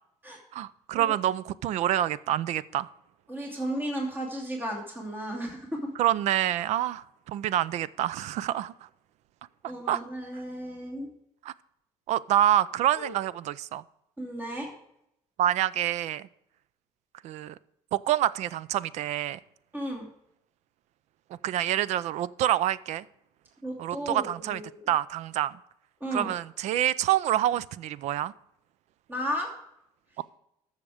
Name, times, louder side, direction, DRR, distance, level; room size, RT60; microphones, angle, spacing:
voice 1, 0.5-2.9 6.0-8.7 9.9-10.0 11.4-11.5 12.1-13.8 15.4-16.3 17.2-17.5 17.9-19.4 21.4-23.0 23.8-24.6 24.9-25.6 26.1-28.3 30.2-30.3, right 12 dB, 65° right, 19 dB, 0.5 m, -27 dB
voice 2, 3.3-5.9 9.6-11.1 12.9-13.1 14.2-14.7 19.7-20.1 23.6-24.9 26.0-26.3 29.1-29.5, equal, 15° right, 0 dB, 2.6 m, -34 dB
14.0 x 6.6 x 4.9 m, 0.78 s
cardioid pair, 110°, 12 cm